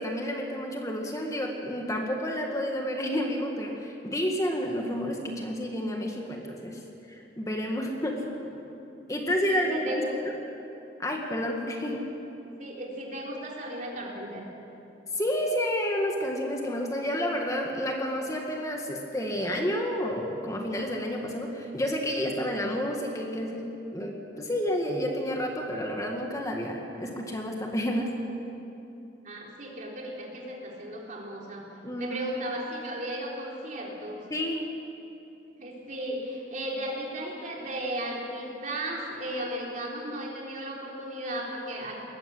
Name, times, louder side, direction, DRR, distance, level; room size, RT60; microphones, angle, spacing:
voice 1, 0.0-6.8 7.1-8.2 9.1-10.3 11.0-12.0 15.2-28.1 31.8-32.2 34.3-34.7, equal, 20° left, 1 dB, 1.9 m, -30 dB
voice 2, 9.5-10.2 12.6-14.5 29.2-31.6 32.0-34.2 35.6-42.0, right 1 dB, 45° right, -2 dB, 3.9 m, -35 dB
20.5 x 15.0 x 9.7 m, 2.9 s
head